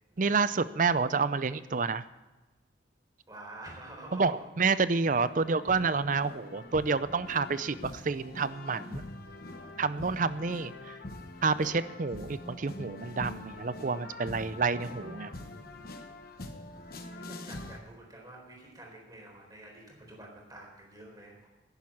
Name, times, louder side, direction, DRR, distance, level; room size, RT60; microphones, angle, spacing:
voice 1, 0.2-2.0 4.1-9.0 9.8-11.0 11.4-15.3, right 4 dB, 45° right, 15 dB, 0.5 m, -29 dB
voice 2, 3.3-4.4 17.1-21.5, right 1 dB, 20° right, -1 dB, 4.0 m, -48 dB
sound 1, 5.1-17.8, left 2 dB, 50° left, 1.2 m, -44 dB
10.5 x 10.5 x 8.6 m, 1.1 s
head